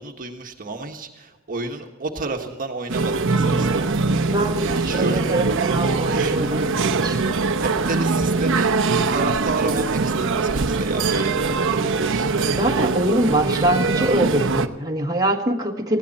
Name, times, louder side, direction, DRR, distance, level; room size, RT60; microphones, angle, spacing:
voice 1, 0.0-4.4 4.8-5.2 6.1-6.7 7.6-8.8 9.1-12.3, right 3 dB, 40° right, 3 dB, 1.5 m, -31 dB
sound 1, 2.9-14.7, right 4 dB, 65° right, 0.9 m, -22 dB
voice 2, 4.3-7.2 12.2-16.0, right 1 dB, 20° right, 0 dB, 1.7 m, -23 dB
19.5 x 16.0 x 4.3 m, 1.1 s
head